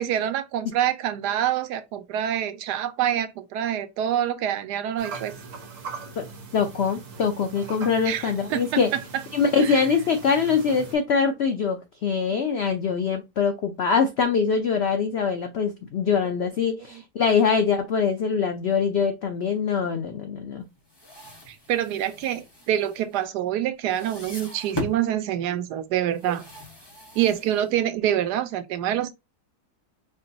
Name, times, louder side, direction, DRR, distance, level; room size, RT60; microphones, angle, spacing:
voice 1, 0.0-5.3 8.0-9.0 9.6-9.8 12.3-12.6 16.9-17.0 21.5-26.4 27.1-29.1, right 11 dB, 80° right, 1.2 m, -26 dB
sound 1, 5.0-11.0, right 4 dB, 55° right, 1.3 m, -40 dB
voice 2, 6.5-8.9 9.3-20.6, left 6 dB, 80° left, 0.5 m, -23 dB
sound 2, 20.8-23.6 23.9-25.1 26.1-28.0, left 1 dB, 20° left, 0.8 m, -39 dB
4.5 x 2.9 x 2.7 m
omnidirectional pair, 1.8 m